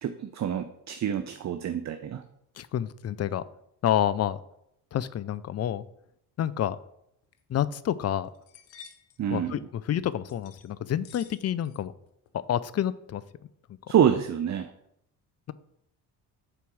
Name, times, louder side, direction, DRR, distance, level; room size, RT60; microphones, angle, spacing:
voice 1, 0.0-2.2 9.2-9.6 13.9-14.7, right 9 dB, 35° right, 9 dB, 0.7 m, -27 dB
voice 2, 2.6-3.4 3.8-4.4 4.9-5.8 6.4-6.8 7.5-8.3 9.3-11.9 12.5-13.2, left 10 dB, 30° left, 17 dB, 0.5 m, -28 dB
sound 1, 7.2-7.4 7.8-7.9 8.2-9.2 10.3-10.7 11.0-11.8 12.1-12.5, left 8 dB, 85° left, 0.9 m, -51 dB
6.9 x 4.5 x 6.1 m, 0.77 s
hypercardioid pair, 55°, 49 cm